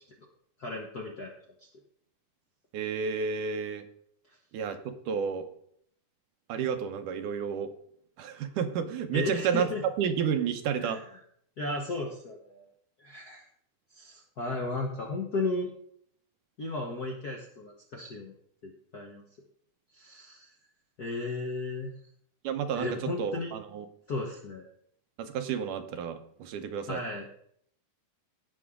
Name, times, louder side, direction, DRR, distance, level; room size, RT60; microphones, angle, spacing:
voice 1, 0.6-1.3 9.1-9.8 10.8-11.0 11.6-12.6 13.0-13.4 13.9-15.7 16.6-18.3 18.6-19.2 19.9-20.5 21.0-21.9 22.7-23.5 24.1-24.7 26.9-27.2, left 2 dB, 60° left, 0 dB, 1.0 m, -34 dB
voice 2, 2.7-3.8 4.5-5.5 6.5-7.7 8.2-9.7 10.0-11.0 22.4-23.9 25.2-27.0, right 7 dB, 85° right, 7 dB, 2.5 m, -31 dB
17.0 x 6.2 x 3.7 m, 0.65 s
omnidirectional pair, 3.5 m